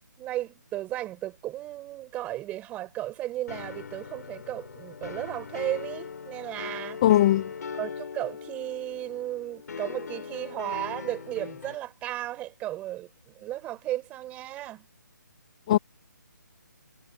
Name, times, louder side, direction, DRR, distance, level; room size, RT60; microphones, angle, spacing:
voice 1, 0.2-7.0 7.8-13.1 13.4-14.9, right 14 dB, 15° right, 4.2 m, -34 dB
sound 1, 3.5-11.8, left 6 dB, 60° left, 4.3 m, -40 dB
voice 2, 7.0-7.5 15.7-15.8, left 13 dB, 20° left, 0.3 m, -19 dB
hypercardioid pair, 160°, 11 cm